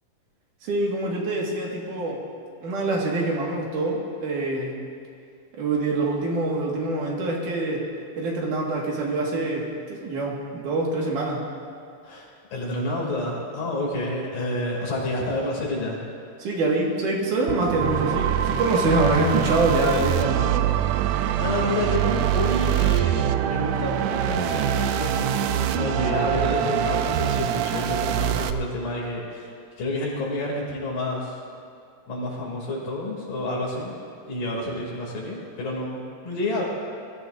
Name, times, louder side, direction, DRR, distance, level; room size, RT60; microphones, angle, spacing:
voice 1, 0.6-2.2 2.6-4.7 5.5-7.8 8.2-11.4 16.4-20.7, right 2 dB, 75° right, -3 dB, 3.3 m, -25 dB
voice 2, 12.0-16.0 21.4-29.5 29.8-31.4 32.1-33.9 34.3-36.6, left 1 dB, 90° left, -3 dB, 4.5 m, -29 dB
sound 1, 17.5-28.5, right 11 dB, 90° right, 1.5 m, -24 dB
21.5 x 14.0 x 2.6 m, 2.4 s
omnidirectional pair, 3.7 m